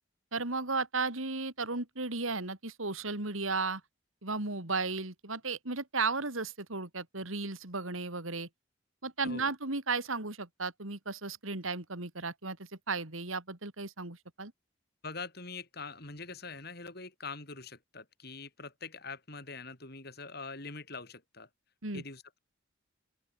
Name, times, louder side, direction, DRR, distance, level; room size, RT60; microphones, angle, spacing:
voice 1, 0.3-3.8 4.2-8.5 9.0-12.6 12.9-14.5 21.8-22.0, right 3 dB, 90° right, 3.7 m, -34 dB
voice 2, 15.0-21.5 21.9-22.4, left 4 dB, 50° left, 6.0 m, -44 dB
open air
head